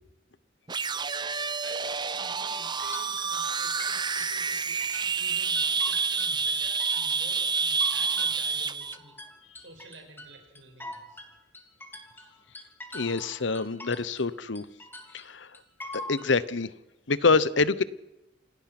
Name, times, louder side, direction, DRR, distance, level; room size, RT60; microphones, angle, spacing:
sound 1, 0.7-9.0, right 5 dB, 25° right, 0.7 m, -28 dB
voice 1, 1.3-9.1 9.6-11.2, right 3 dB, 70° right, 4 dB, 5.9 m, -50 dB
sound 2, 2.2-5.3 5.6-7.3 7.5-14.3 14.6-16.3, left 1 dB, 10° left, 3.1 m, -44 dB
voice 2, 12.9-14.7 15.1-15.5 16.1-16.7 17.1-17.8, left 4 dB, 70° left, 17 dB, 1.0 m, -25 dB
28.0 x 19.0 x 6.0 m, 0.92 s
head